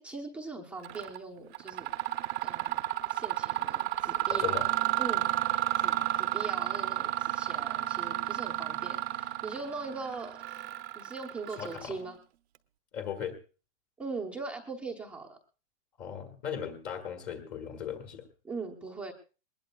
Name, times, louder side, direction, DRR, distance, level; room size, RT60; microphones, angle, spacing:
voice 1, 0.0-1.9 2.4-2.8 3.1-4.7 5.0-5.3 5.8-10.6 10.9-12.2 14.0-15.4 18.4-19.1, right 3 dB, 5° right, -1 dB, 0.9 m, -40 dB
Mechanisms, 0.8-1.2 1.5-12.1, right 13 dB, 55° right, 0.9 m, -32 dB
voice 2, 4.3-4.7 11.6-12.0 12.9-13.4 16.0-18.2, left 8 dB, 25° left, 5 dB, 1.8 m, -37 dB
21.5 x 20.0 x 2.3 m, 0.35 s
supercardioid pair, 170°, 38 cm